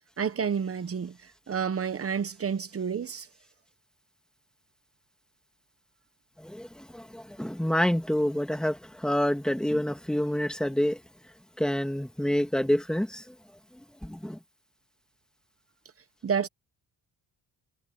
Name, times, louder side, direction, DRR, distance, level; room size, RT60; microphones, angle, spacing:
voice 1, 0.2-3.3 16.2-16.5, right 7 dB, 35° right, 1.0 m, -30 dB
voice 2, 6.4-11.0 11.6-13.3 14.0-14.4, equal, ahead, 1.8 m, -28 dB
wide cardioid pair, 160°, 41 cm